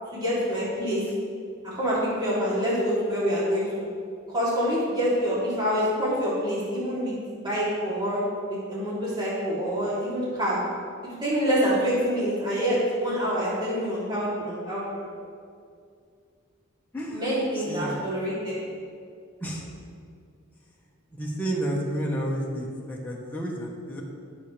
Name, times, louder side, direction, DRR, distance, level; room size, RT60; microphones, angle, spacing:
voice 1, 0.1-1.0 1.6-3.9 4.3-8.2 8.5-10.6 11.0-15.0 17.1-18.6, equal, 20° right, -9 dB, 3.1 m, -26 dB
voice 2, 16.9-17.3 17.5-18.0 19.4-19.7 21.1-24.0, right 1 dB, 10° left, -4 dB, 1.3 m, -31 dB
19.0 x 7.3 x 3.4 m, 2.3 s
head